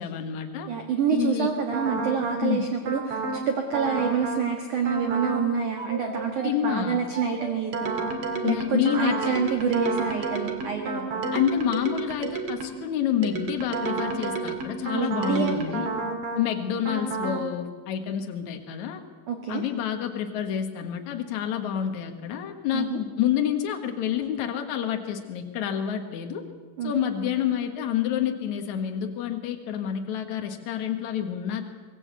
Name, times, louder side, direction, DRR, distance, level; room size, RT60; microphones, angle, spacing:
voice 1, 0.0-0.7 1.1-1.5 2.4-2.6 6.4-7.0 8.4-9.4 11.3-15.9 16.4-19.0 19.5-26.4 26.8-31.7, left 9 dB, 80° left, 5 dB, 1.6 m, -28 dB
voice 2, 0.7-7.9 8.4-11.2 14.9-15.6 19.3-19.7 22.7-23.0 26.8-26.9, right 6 dB, 60° right, 4 dB, 2.2 m, -27 dB
sound 1, 1.7-2.4 2.8-3.4 3.7-4.4 4.8-5.4 5.8-12.8 13.2-16.4 16.8-17.4, right 3 dB, 45° right, 2.1 m, -31 dB
24.0 x 19.5 x 8.2 m, 1.5 s
omnidirectional pair, 5.7 m